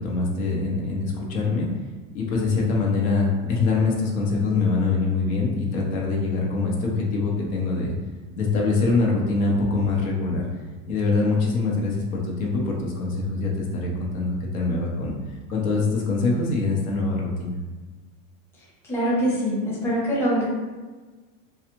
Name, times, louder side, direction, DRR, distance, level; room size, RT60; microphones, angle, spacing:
voice 1, 0.0-1.7 2.1-7.9 8.4-10.6 10.9-17.5, left 3 dB, 85° left, -2 dB, 1.1 m, -24 dB
voice 2, 18.8-20.4, equal, 5° left, -9 dB, 0.7 m, -23 dB
4.0 x 2.4 x 3.0 m, 1.3 s
supercardioid pair, 160°, 41 cm